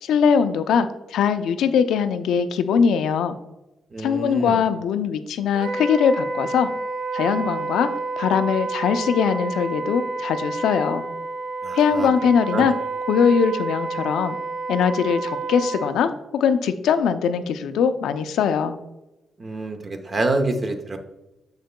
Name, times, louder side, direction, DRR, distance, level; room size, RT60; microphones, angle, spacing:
voice 1, 0.0-3.4 4.0-6.7 7.1-7.9 8.2-11.0 11.7-12.7 13.1-14.4 14.7-18.8, left 7 dB, 90° left, 10 dB, 0.4 m, -21 dB
voice 2, 3.9-4.6 11.6-12.1 12.5-12.7 19.4-21.0, right 2 dB, 35° right, 6 dB, 0.7 m, -26 dB
Wind instrument woodwind instrument, 5.5-16.0, right 3 dB, 85° right, 0.4 m, -29 dB
6.9 x 6.5 x 2.2 m, 0.98 s
cardioid pair, 115°, 0 cm